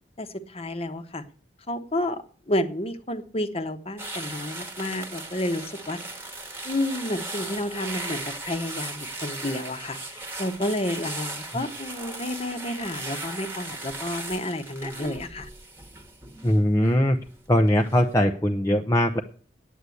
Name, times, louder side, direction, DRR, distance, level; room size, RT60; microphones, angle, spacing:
voice 1, 0.2-1.2 1.7-6.0 6.6-15.5, left 1 dB, 35° left, 8 dB, 1.1 m, -30 dB
sound 1, 4.0-17.3 17.7-18.0, right 2 dB, 15° right, 1.4 m, -37 dB
voice 2, 16.4-17.2 17.5-19.2, left 1 dB, 15° left, 2 dB, 0.6 m, -21 dB
9.6 x 7.9 x 8.4 m, 0.43 s
head